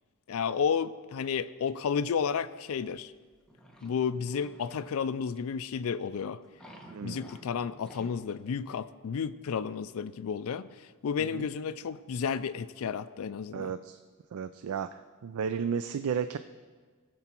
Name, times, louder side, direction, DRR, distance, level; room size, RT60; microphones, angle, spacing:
voice 1, 0.3-3.1 3.8-6.4 7.0-10.7 11.0-13.7, left 6 dB, 70° left, 12 dB, 0.4 m, -32 dB
sound 1, 2.9-5.0 5.4-5.6 6.4-8.3 8.7-8.8, equal, 5° left, 1.2 m, -52 dB
voice 2, 6.9-7.3 11.2-11.5 13.5-14.0 14.3-16.4, right 7 dB, 70° right, 11 dB, 0.4 m, -33 dB
18.5 x 7.0 x 4.4 m, 1.5 s
head